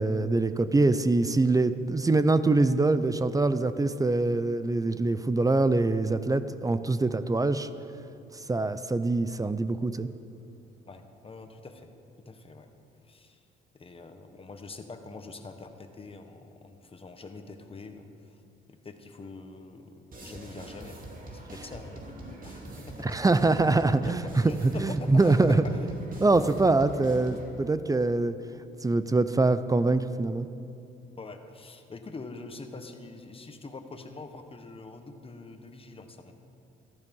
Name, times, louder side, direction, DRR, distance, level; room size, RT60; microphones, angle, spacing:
voice 1, 0.0-7.7 8.5-10.1 23.0-24.2 24.6-25.6 26.2-28.4 28.8-30.5, right 3 dB, 15° right, 13 dB, 0.6 m, -24 dB
voice 2, 10.9-11.9 12.2-12.7 13.0-13.4 13.7-18.4 18.7-19.9 20.2-21.0 21.3-23.3 23.8-25.8 31.2-36.3, left 3 dB, 30° left, 6 dB, 1.4 m, -44 dB
sound 1, 20.1-27.5, right 2 dB, 45° right, 2.8 m, -43 dB
14.0 x 13.0 x 5.5 m, 2.6 s
cardioid pair, 90°, 20 cm